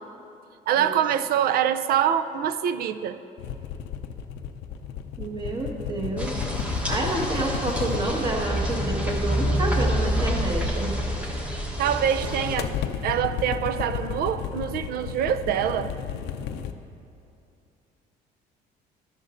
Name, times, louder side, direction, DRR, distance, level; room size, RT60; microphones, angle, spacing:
voice 1, 0.7-3.2 11.8-12.7 13.0-15.9, right 9 dB, 65° right, 12 dB, 0.4 m, -25 dB
sound 1, 3.4-11.5 12.1-16.7, left 8 dB, 85° left, 0.5 m, -34 dB
voice 2, 5.2-6.4 6.9-11.0, right 2 dB, 25° right, 0 dB, 1.5 m, -29 dB
sound 2, 6.2-12.5, equal, 5° right, 1.1 m, -27 dB
12.5 x 10.5 x 2.5 m, 2.6 s
cardioid pair, 110°, 17 cm